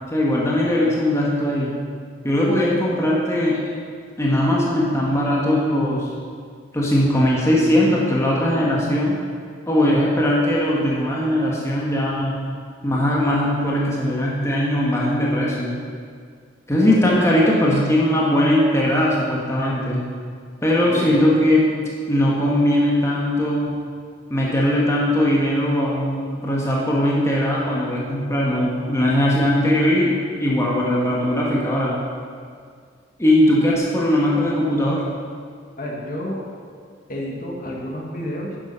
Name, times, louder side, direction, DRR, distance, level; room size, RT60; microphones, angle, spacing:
voice 1, 0.1-1.7 2.2-3.6 4.2-6.1 6.7-9.1 9.7-12.4 12.8-15.7 16.7-20.0 20.6-21.7 22.1-23.7 24.3-31.9 33.2-35.0, left 1 dB, 15° left, -5 dB, 1.3 m, -19 dB
voice 2, 16.9-17.2 20.9-21.3 35.8-36.4 37.1-38.5, equal, 45° left, -2 dB, 1.5 m, -30 dB
10.5 x 6.9 x 5.6 m, 2.1 s
head